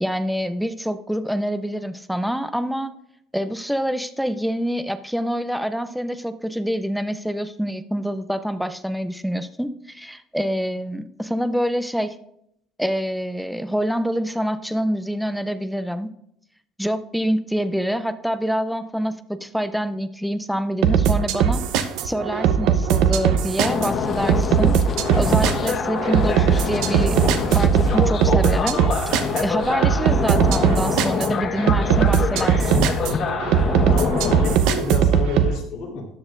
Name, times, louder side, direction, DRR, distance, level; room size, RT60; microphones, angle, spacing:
voice 1, 0.0-2.9 3.3-12.2 12.8-16.1 16.8-21.7 22.0-24.8 25.2-27.2 27.5-28.8 29.4-32.8, equal, ahead, 11 dB, 0.5 m, -26 dB
sound 1, 20.8-35.5, right 8 dB, 75° right, 0.8 m, -20 dB
sound 2, 23.6-34.6, left 5 dB, 35° left, 0.9 m, -25 dB
sound 3, 24.9-26.5, right 5 dB, 45° right, 3.8 m, -39 dB
voice 2, 33.9-36.1, left 5 dB, 65° left, -2 dB, 3.7 m, -29 dB
13.5 x 10.0 x 2.6 m, 0.74 s
cardioid pair, 150°, 0 cm